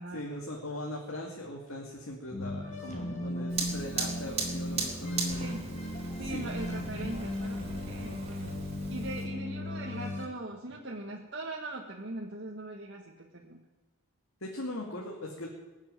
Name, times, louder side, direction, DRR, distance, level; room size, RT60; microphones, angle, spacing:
voice 1, 0.1-5.4 6.2-6.5 14.4-15.5, left 1 dB, 70° left, 0 dB, 2.3 m, -40 dB
sound 1, 2.3-10.3, left 1 dB, 30° left, 2.5 m, -36 dB
Fire, 3.5-9.3, right 4 dB, 30° right, 3.4 m, -38 dB
voice 2, 5.3-5.7 6.2-8.6 8.9-13.6, right 2 dB, 50° right, -1 dB, 1.5 m, -40 dB
21.0 x 7.4 x 9.0 m, 1.2 s
head